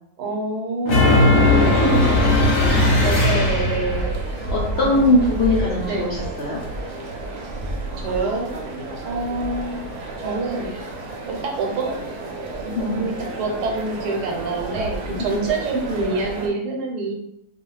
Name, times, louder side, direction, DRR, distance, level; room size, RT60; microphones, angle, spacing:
voice 1, 0.2-4.1 4.7-5.1 5.8-6.1 8.0-8.5 9.0-9.8 10.2-10.8 11.3-12.0 12.5-17.1, right 3 dB, 90° right, 1 dB, 1.2 m, -27 dB
sound 1, 0.9-4.1, left 2 dB, 45° left, 0.8 m, -17 dB
sound 2, 1.3-16.5, right 2 dB, 70° right, 1.0 m, -30 dB
voice 2, 4.5-6.6 12.7-13.0 15.3-15.4, left 2 dB, 75° left, -5 dB, 0.5 m, -20 dB
2.4 x 2.3 x 3.1 m, 0.75 s
omnidirectional pair, 1.7 m